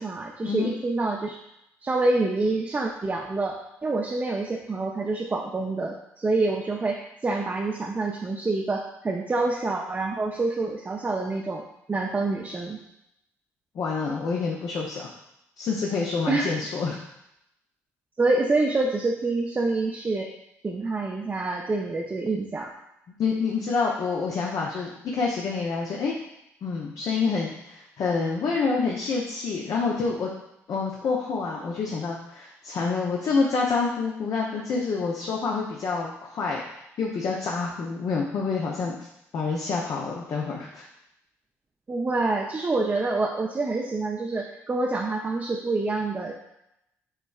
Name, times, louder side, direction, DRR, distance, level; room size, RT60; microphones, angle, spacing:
voice 1, 0.0-1.4 1.8-12.8 16.3-16.5 18.2-20.3 20.6-22.7 41.9-46.3, right 3 dB, 25° right, 0 dB, 0.6 m, -27 dB
voice 2, 13.7-15.1 15.6-17.0 23.2-26.2 26.6-30.3 30.7-38.9 39.3-40.8, left 4 dB, 55° left, -2 dB, 0.7 m, -27 dB
5.6 x 3.2 x 2.4 m, 0.82 s
hypercardioid pair, 50°, 7 cm